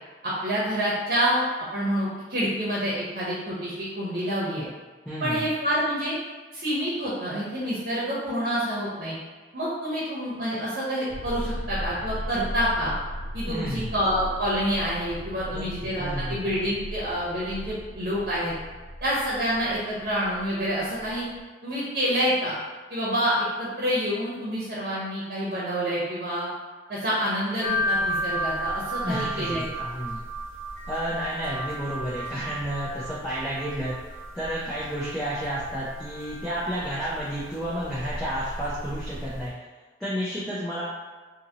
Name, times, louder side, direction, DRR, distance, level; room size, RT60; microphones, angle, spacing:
voice 1, 0.2-1.5 1.7-4.7 5.2-6.2 6.5-9.1 9.5-12.9 13.3-18.5 19.0-21.3 21.6-22.6 22.9-26.5 26.9-29.9, equal, 55° right, -7 dB, 0.8 m, -27 dB
voice 2, 5.1-5.4 13.5-13.9 15.3-16.5 29.0-30.2 30.9-33.9 34.3-39.5 40.0-40.8, equal, 5° left, -10 dB, 0.4 m, -31 dB
sound 1, 11.1-21.4, equal, 85° left, 0.4 m, -37 dB
sound 2, 27.6-39.5, equal, 50° left, 1.0 m, -34 dB
2.7 x 2.6 x 2.8 m, 1.3 s
head